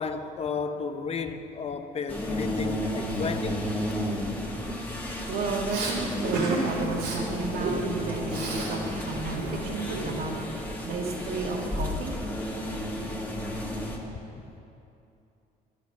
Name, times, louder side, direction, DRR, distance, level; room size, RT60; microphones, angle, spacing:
voice 1, 0.0-3.6, left 5 dB, 35° left, 8 dB, 0.9 m, -33 dB
sound 1, 2.1-14.0, left 1 dB, 10° left, 2.0 m, -32 dB
voice 2, 5.3-8.4 8.7-10.3 10.8-12.1, right 4 dB, 65° right, -1 dB, 2.1 m, -32 dB
Respiratory sounds, 5.7-6.0 6.3-6.6 6.9-7.2 7.6-8.7 9.0-10.4, right 3 dB, 90° right, 2.7 m, -32 dB
13.5 x 10.5 x 6.0 m, 2.8 s
cardioid pair, 110°, 17 cm